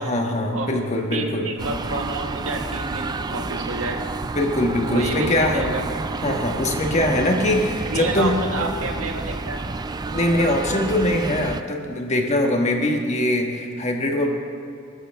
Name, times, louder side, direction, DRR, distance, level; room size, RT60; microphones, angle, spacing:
voice 1, 0.0-1.5 4.3-5.7 6.2-8.4 10.1-14.3, left 1 dB, 35° left, 2 dB, 1.4 m, -22 dB
voice 2, 0.5-4.0 4.9-5.9 7.8-9.6, right 2 dB, 80° right, 2 dB, 1.6 m, -29 dB
sound 1, 1.6-11.6, right 3 dB, 20° right, 0.3 m, -30 dB
21.5 x 12.5 x 3.4 m, 2.5 s
head